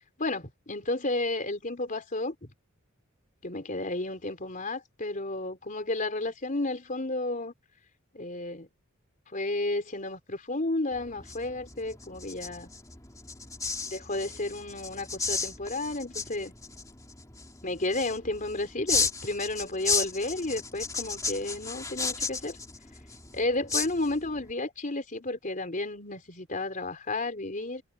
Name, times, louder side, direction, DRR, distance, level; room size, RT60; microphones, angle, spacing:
voice 1, 0.2-2.5 3.4-7.5 8.1-8.7 9.3-12.7 13.9-16.5 17.6-22.6 23.3-27.8, left 2 dB, 40° left, 3.8 m, -32 dB
sound 1, 10.9-24.5, left 4 dB, 15° left, 2.6 m, -34 dB
head